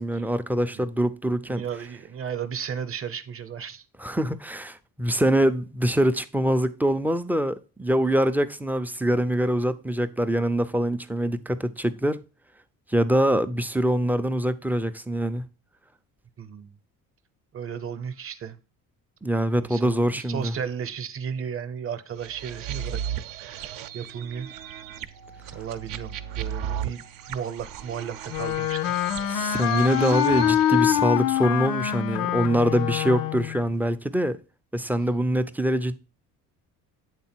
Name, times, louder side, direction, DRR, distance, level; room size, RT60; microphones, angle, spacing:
voice 1, 0.0-1.6 4.0-12.2 12.9-15.5 19.2-20.5 29.3-34.4 34.7-36.0, right 1 dB, 5° right, 0.3 m, -24 dB
voice 2, 1.5-3.8 16.4-16.7 17.5-18.6 19.6-24.5 25.5-28.8 33.7-33.8, right 7 dB, 40° right, 0.8 m, -34 dB
sound 1, 22.2-31.0, right 10 dB, 70° right, 0.6 m, -36 dB
Wind instrument woodwind instrument, 28.3-33.6, left 12 dB, 80° left, 0.5 m, -25 dB
8.2 x 3.6 x 4.3 m
cardioid pair, 110°, 34 cm